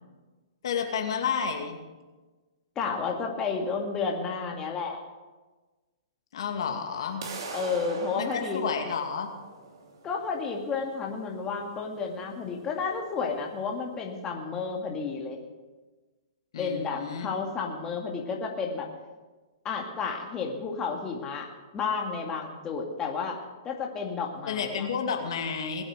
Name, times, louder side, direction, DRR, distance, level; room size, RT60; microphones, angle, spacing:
voice 1, 0.6-1.8 6.3-7.2 8.2-9.3 16.5-17.3 24.5-25.8, left 6 dB, 65° left, 3 dB, 2.4 m, -31 dB
voice 2, 2.8-5.0 7.5-8.6 10.0-15.4 16.6-18.9 19.6-23.4 23.6-24.9, left 5 dB, 20° left, 1 dB, 2.3 m, -31 dB
sound 1, 7.2-13.2, right 3 dB, 60° right, 2.9 m, -41 dB
20.5 x 8.8 x 6.7 m, 1.3 s
hypercardioid pair, 130°, 3 cm